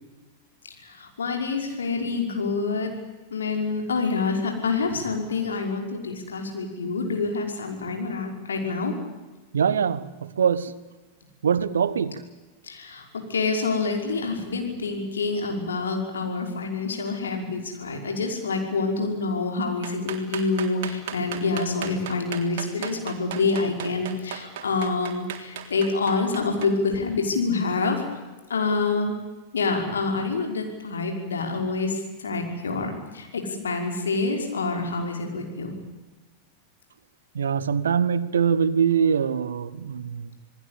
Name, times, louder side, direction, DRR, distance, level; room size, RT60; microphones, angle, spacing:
voice 1, 0.9-2.9 3.3-8.9 12.7-28.0 28.5-29.1 29.5-35.7, left 4 dB, 70° left, 5.5 m, -27 dB
voice 2, 9.5-10.7 11.4-12.2 37.3-40.3, right 7 dB, 65° right, 1.2 m, -23 dB
sound 1, 19.8-26.7, right 9 dB, 50° right, 3.5 m, -36 dB
28.0 x 20.0 x 8.5 m
figure-of-eight pair, 90°, 0 cm